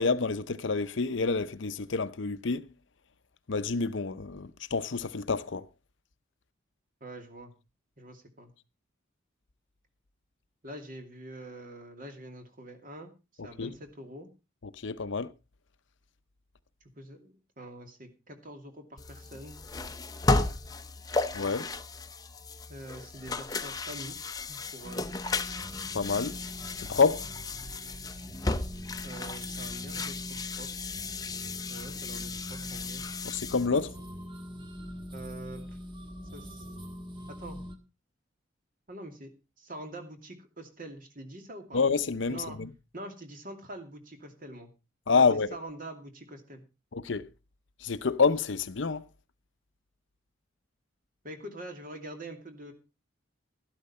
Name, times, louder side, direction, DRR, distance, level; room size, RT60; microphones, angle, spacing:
voice 1, 0.0-2.6 3.5-5.6 13.6-13.7 14.8-15.3 21.3-21.7 25.9-26.4 26.8-27.3 33.2-33.9 41.7-42.7 45.1-45.5 46.9-47.3 47.8-49.0, left 4 dB, 70° left, 0.7 m, -28 dB
voice 2, 7.0-7.5 8.0-8.5 10.6-13.1 13.4-14.3 17.0-19.6 22.7-25.1 29.0-30.3 30.6-30.7 31.7-33.1 35.1-35.6 36.3-36.7 37.4-37.6 38.9-39.3 39.6-41.8 42.3-42.6 42.9-44.7 45.1-45.2 45.5-46.6 51.2-52.7, right 1 dB, 45° right, 2.6 m, -44 dB
sound 1, 19.0-33.7, left 3 dB, 20° left, 0.8 m, -34 dB
sound 2, 24.8-37.8, equal, 25° right, 1.5 m, -43 dB
12.5 x 12.0 x 4.3 m
head